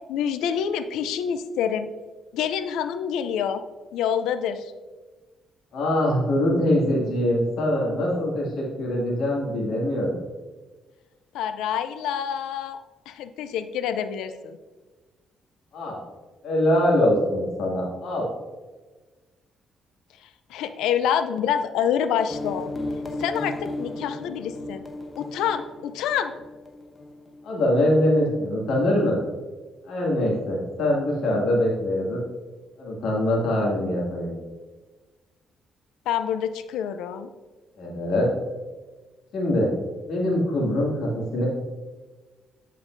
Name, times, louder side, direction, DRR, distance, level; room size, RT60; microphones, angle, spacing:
voice 1, 0.1-1.9 2.3-3.6 3.9-4.7 11.3-14.6 20.5-22.7 23.2-24.8 25.2-26.3 36.1-37.3, left 8 dB, 90° left, 10 dB, 0.5 m, -27 dB
voice 2, 5.7-10.2 15.7-16.0 16.4-18.3 27.4-29.2 29.9-32.2 32.8-34.4 37.8-38.3 39.3-39.7 40.1-41.5, left 1 dB, 75° left, -3 dB, 2.3 m, -23 dB
sound 1, 22.3-27.7, left 2 dB, 25° left, 0.9 m, -35 dB
9.4 x 5.3 x 2.6 m, 1.3 s
cardioid pair, 90°, 0 cm